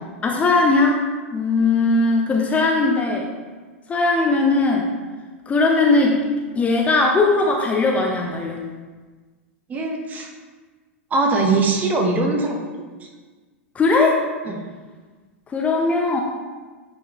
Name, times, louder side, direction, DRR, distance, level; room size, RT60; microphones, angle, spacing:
voice 1, 0.2-1.0 1.3-3.3 3.9-4.9 5.5-6.2 6.5-8.6 13.7-14.2 15.5-16.2, left 3 dB, 20° left, 1 dB, 0.8 m, -19 dB
voice 2, 9.7-10.3 11.1-12.6 14.5-14.6, right 3 dB, 20° right, 1 dB, 1.1 m, -21 dB
9.4 x 4.9 x 3.0 m, 1.4 s
figure-of-eight pair, 95°, 7 cm